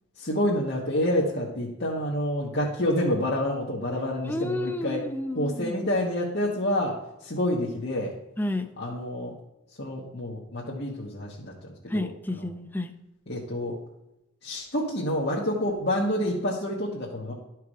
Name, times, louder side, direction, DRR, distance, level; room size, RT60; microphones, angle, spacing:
voice 1, 0.2-5.1 5.3-7.0 7.2-8.1 8.8-9.3 9.8-11.5 11.9-12.1 13.3-13.8 14.4-17.3, left 1 dB, 50° left, -4 dB, 1.2 m, -28 dB
voice 2, 4.2-5.8 8.4-8.7 11.9-12.9, left 1 dB, 10° left, 6 dB, 0.6 m, -30 dB
11.0 x 4.7 x 4.8 m, 0.89 s
head